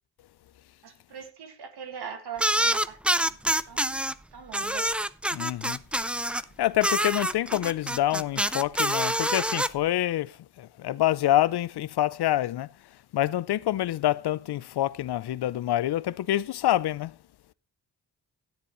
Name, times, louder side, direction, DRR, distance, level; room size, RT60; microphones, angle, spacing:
voice 1, 0.8-3.0 3.3-3.4 3.7-3.9 4.3-4.9, right 7 dB, 90° right, 1.9 m, -41 dB
sound 1, 2.4-4.1 4.5-6.4 6.8-9.7, right 1 dB, 5° right, 0.4 m, -26 dB
voice 2, 5.3-5.8 6.6-12.7 13.1-17.1, left 13 dB, 85° left, 0.5 m, -26 dB
13.0 x 9.8 x 3.0 m
wide cardioid pair, 95°, 38 cm